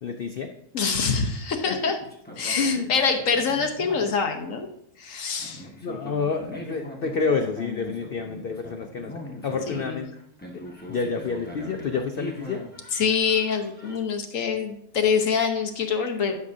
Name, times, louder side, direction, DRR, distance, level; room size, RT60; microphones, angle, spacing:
voice 1, 0.0-0.5 1.7-1.8 2.6-2.9 5.8-9.1 9.4-10.1 10.5-12.6, left 4 dB, 85° left, 6 dB, 0.5 m, -28 dB
voice 2, 0.7-2.0 2.4-4.7 5.0-5.7 9.7-10.1 12.9-16.4, left 6 dB, 60° left, 4 dB, 1.2 m, -25 dB
sound 1, 2.0-4.2 5.4-14.0, left 1 dB, 5° left, 1.2 m, -40 dB
11.0 x 6.3 x 2.6 m, 0.77 s
omnidirectional pair, 1.7 m